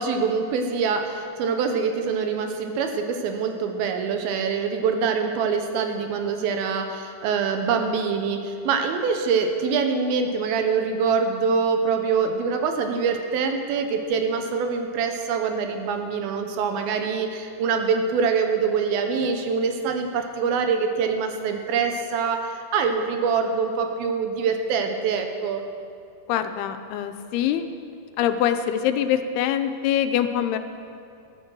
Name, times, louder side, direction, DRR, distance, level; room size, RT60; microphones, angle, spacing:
voice 1, 0.0-25.7, right 5 dB, 75° right, 5 dB, 2.6 m, -24 dB
voice 2, 26.3-27.7 28.2-30.6, left 10 dB, 85° left, 9 dB, 2.6 m, -24 dB
12.5 x 10.0 x 6.2 m, 2.4 s
omnidirectional pair, 4.5 m